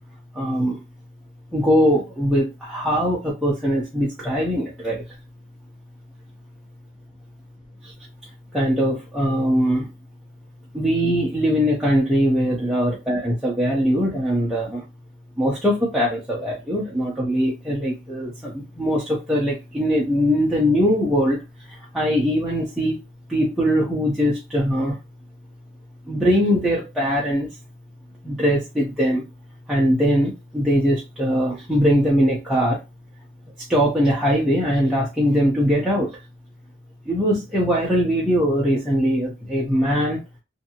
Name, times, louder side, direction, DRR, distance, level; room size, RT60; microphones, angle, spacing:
voice 1, 0.4-0.8 1.5-5.0 8.5-9.9 10.7-14.8 15.4-21.4 21.9-23.0 23.3-24.9 26.1-27.5 28.2-29.2 29.7-32.8 33.7-36.1 37.1-40.2, equal, 5° right, 0.6 m, -21 dB
2.7 x 2.6 x 2.8 m
head